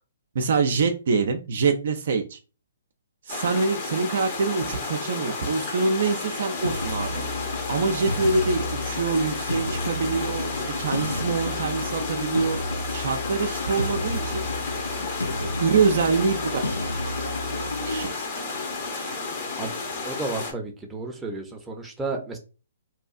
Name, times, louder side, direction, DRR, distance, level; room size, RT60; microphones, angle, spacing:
voice 1, 0.3-2.4 3.3-7.2 7.7-12.6 12.9-14.5 14.9-16.6 16.9-18.3, right 4 dB, 60° right, 5 dB, 0.4 m, -25 dB
sound 1, 3.3-20.5, left 3 dB, 40° left, 0.8 m, -32 dB
sound 2, 6.6-18.0, left 2 dB, 85° left, 0.4 m, -31 dB
voice 2, 20.0-22.4, right 3 dB, 10° right, 2 dB, 0.6 m, -32 dB
2.7 x 2.4 x 2.4 m, 0.33 s
hypercardioid pair, 135°, 0 cm